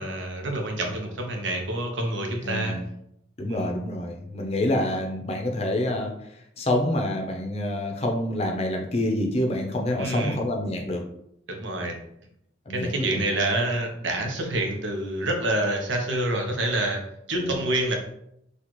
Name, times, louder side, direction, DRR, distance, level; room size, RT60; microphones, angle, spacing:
voice 1, 0.0-2.8 3.4-3.7 10.0-10.4 11.5-12.0 12.7-17.0 17.3-18.0, right 1 dB, 85° right, 2 dB, 0.8 m, -27 dB
voice 2, 2.4-2.8 3.4-6.1 6.6-11.0 12.7-13.2 17.4-17.5, left 1 dB, 35° left, 2 dB, 0.6 m, -27 dB
4.1 x 2.4 x 3.0 m, 0.75 s
head